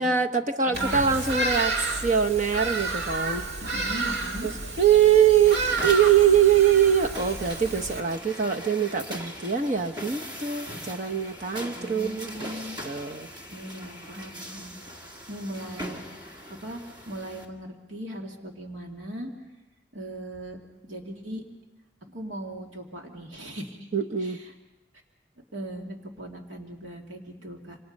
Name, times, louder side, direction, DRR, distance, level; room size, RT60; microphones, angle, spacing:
voice 1, 0.0-3.5 4.4-4.5 4.8-13.3 23.9-24.4, right 8 dB, 40° right, 4 dB, 1.0 m, -23 dB
Bird vocalization bird call bird song, 0.7-8.0, right 3 dB, 60° right, 2.4 m, -30 dB
voice 2, 0.7-1.2 3.6-4.5 11.7-12.8 13.5-14.7 15.0-19.3 19.9-20.6 20.8-21.4 22.0-23.9 24.2-24.5 25.5-27.8, right 1 dB, 80° right, 1 dB, 2.5 m, -39 dB
sound 1, 5.5-17.5, equal, 25° right, 2.1 m, -40 dB
27.0 x 26.5 x 5.4 m, 0.98 s
head